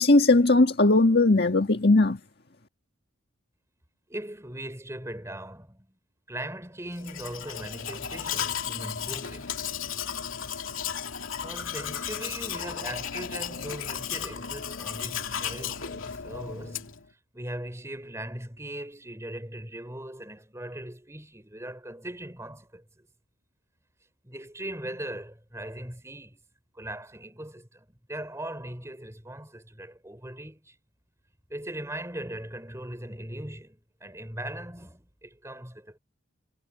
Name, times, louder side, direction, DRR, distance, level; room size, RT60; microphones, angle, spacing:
voice 1, 0.0-2.2, left 2 dB, 50° left, 1.8 m, -19 dB
voice 2, 4.1-5.9 6.3-9.6 11.4-23.1 24.2-26.4 26.7-30.8 31.5-36.0, right 1 dB, 15° right, 4.3 m, -39 dB
Domestic sounds home sounds, 7.0-17.1, left 8 dB, 75° left, 2.4 m, -34 dB
head